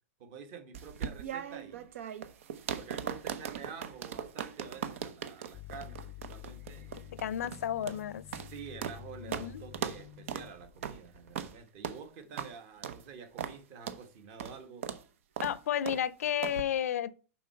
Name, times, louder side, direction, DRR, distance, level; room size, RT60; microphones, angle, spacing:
voice 1, 0.2-1.9 2.7-7.3 8.4-14.8, right 6 dB, 35° right, 1.4 m, -48 dB
sound 1, 0.7-9.0 9.3-9.5 9.7-10.0 10.3-10.5 10.8-11.0 11.3-11.5 11.8-12.0 12.4-12.5 12.8-13.0 13.4-13.6 13.9-14.0 14.4-14.6 14.8-15.0 15.4-15.6 15.9-16.0 16.4-16.6, right 8 dB, 60° right, 0.9 m, -38 dB
sound 2, 5.5-10.5, left 15 dB, 25° left, 0.5 m, -49 dB
sound 3, 6.6-11.7, right 1 dB, 80° right, 3.3 m, -59 dB
voice 2, 7.1-8.2 9.2-9.6 15.4-17.2, left 10 dB, 80° left, 0.7 m, -32 dB
7.3 x 5.6 x 5.8 m
supercardioid pair, 170°, 8 cm